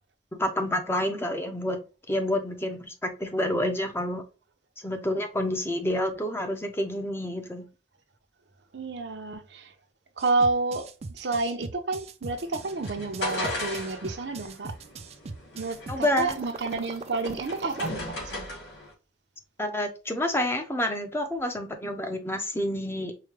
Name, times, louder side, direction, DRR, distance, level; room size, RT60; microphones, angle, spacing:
voice 1, 0.4-1.8 2.1-4.2 4.8-7.7 15.9-16.4 19.6-23.1, left 1 dB, 15° left, 0.6 m, -28 dB
voice 2, 8.7-9.7 10.2-14.7 15.5-18.5, right 3 dB, 75° right, 0.7 m, -30 dB
sound 1, 10.2-17.9, right 3 dB, 35° right, 0.4 m, -40 dB
sound 2, 12.3-18.9, left 2 dB, 85° left, 1.9 m, -37 dB
4.8 x 2.2 x 3.1 m
head